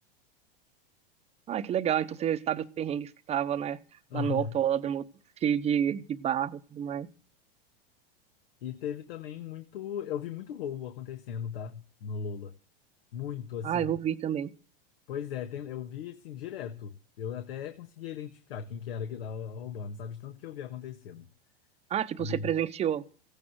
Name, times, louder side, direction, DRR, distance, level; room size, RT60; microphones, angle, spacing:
voice 1, 1.5-3.8 4.1-5.0 5.4-7.1 13.6-14.5 21.9-23.0, right 9 dB, 20° right, 0.9 m, -29 dB
voice 2, 4.1-4.5 8.6-12.5 13.1-13.9 15.1-21.3 22.2-22.5, left 8 dB, 75° left, 1.6 m, -37 dB
16.0 x 8.9 x 8.0 m
supercardioid pair, 140°, 29 cm